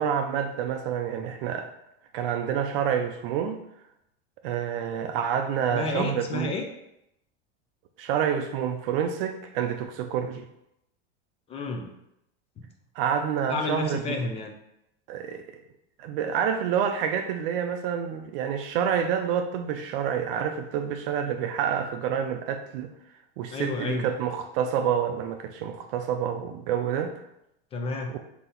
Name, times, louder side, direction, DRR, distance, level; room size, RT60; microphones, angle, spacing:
voice 1, 0.0-1.7 2.1-3.6 4.4-6.5 8.0-10.5 13.0-14.2 15.1-15.5 16.0-22.9 23.4-27.2 28.1-28.2, right 8 dB, 65° right, 6 dB, 0.5 m, -28 dB
voice 2, 5.7-6.6 11.5-11.9 12.6-12.7 13.5-14.5 23.5-24.1 27.7-28.1, left 3 dB, 20° left, 3 dB, 0.4 m, -30 dB
4.1 x 2.9 x 3.9 m, 0.82 s
supercardioid pair, 145°, 30 cm